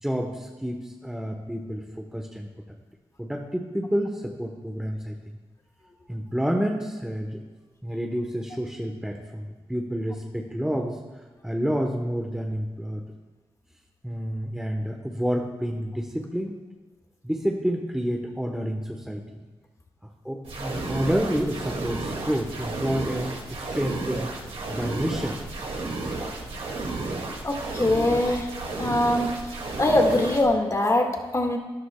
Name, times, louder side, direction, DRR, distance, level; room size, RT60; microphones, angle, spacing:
voice 1, 0.0-2.5 3.2-5.2 6.1-7.5 7.8-11.0 11.4-13.0 14.0-16.5 17.2-19.4 20.0-24.3 24.7-25.4, equal, 5° right, 2 dB, 1.0 m, -29 dB
sound 1, 20.4-30.4, right 2 dB, 70° right, 2.1 m, -32 dB
voice 2, 27.4-28.5 28.8-29.3 29.8-31.6, left 1 dB, 30° left, 2 dB, 1.7 m, -22 dB
13.0 x 11.0 x 2.2 m, 1.2 s
cardioid pair, 55°, 10 cm